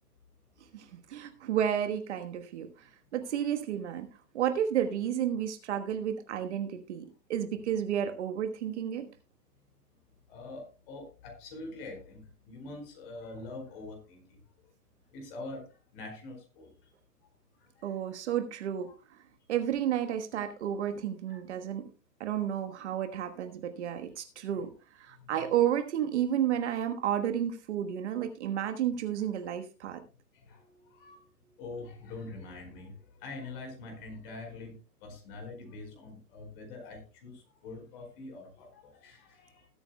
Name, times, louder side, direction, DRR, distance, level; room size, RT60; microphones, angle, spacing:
voice 1, 0.7-2.9 3.1-4.1 4.3-9.1 17.8-18.9 19.5-21.8 22.2-30.0, right 10 dB, 45° right, 6 dB, 1.4 m, -31 dB
voice 2, 10.3-14.4 15.1-15.6 15.9-16.7 17.6-18.0 18.8-18.9 21.3-21.4 24.5-24.6 25.1-25.5 30.3-31.3 31.6-34.8 35.0-39.7, left 3 dB, 35° left, 4 dB, 4.7 m, -45 dB
20.0 x 8.8 x 2.2 m, 0.32 s
hypercardioid pair, 140°, 48 cm